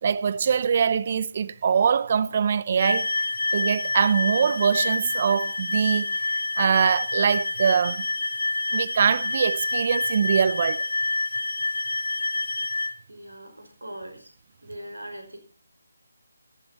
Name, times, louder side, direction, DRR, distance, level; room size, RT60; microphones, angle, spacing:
voice 1, 0.0-8.0 8.7-10.8, right 7 dB, 40° right, 0.7 m, -23 dB
sound 1, 2.8-12.9, left 2 dB, 65° left, 2.1 m, -27 dB
voice 2, 13.1-14.3 14.6-15.4, right 1 dB, 85° right, 5.4 m, -40 dB
18.0 x 13.5 x 4.3 m
figure-of-eight pair, 150°, 0 cm